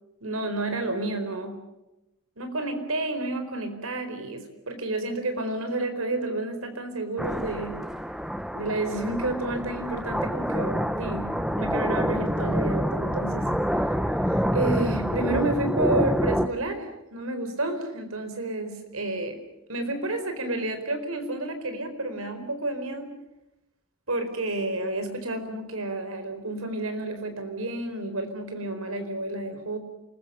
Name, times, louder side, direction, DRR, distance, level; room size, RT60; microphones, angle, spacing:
voice 1, 0.2-1.6 2.4-7.8 8.5-11.3 11.6-13.5 14.2-19.4 19.7-23.1 24.1-29.8, right 2 dB, 85° right, 8 dB, 4.6 m, -30 dB
sound 1, 7.2-16.5, equal, 5° right, 1.0 m, -27 dB
28.5 x 21.0 x 6.8 m, 0.91 s
head